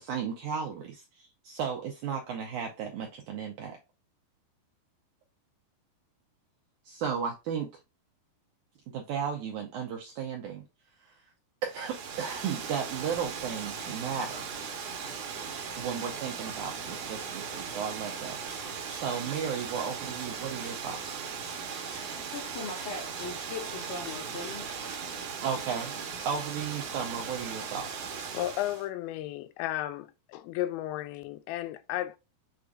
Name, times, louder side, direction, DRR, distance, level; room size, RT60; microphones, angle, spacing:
voice 1, 0.0-3.8 6.9-7.7 8.9-10.6 11.0-11.1 11.6-14.5 15.8-21.3 25.4-26.0 26.3-27.9, right 7 dB, 80° right, 1.7 m, -35 dB
Water, 11.7-28.9, right 6 dB, 65° right, 1.7 m, -38 dB
Rattle (instrument), 18.5-25.2, right 1 dB, 5° left, 0.5 m, -52 dB
voice 2, 22.1-24.8, left 4 dB, 65° left, 2.9 m, -40 dB
voice 3, 28.3-32.2, left 14 dB, 90° left, 2.4 m, -34 dB
6.6 x 2.4 x 2.5 m
omnidirectional pair, 4.2 m